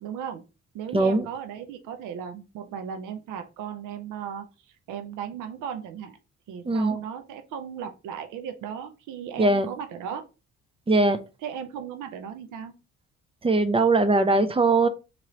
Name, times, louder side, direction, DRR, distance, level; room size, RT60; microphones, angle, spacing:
voice 1, 0.0-0.4 0.7-6.2 6.5-10.2 11.4-12.8, right 8 dB, 90° right, 0.6 m, -36 dB
voice 2, 0.9-1.2 6.7-7.0 9.4-9.7 10.9-11.2 13.4-14.9, right 2 dB, 20° right, 0.5 m, -20 dB
3.0 x 3.0 x 3.7 m
cardioid pair, 90°, 30 cm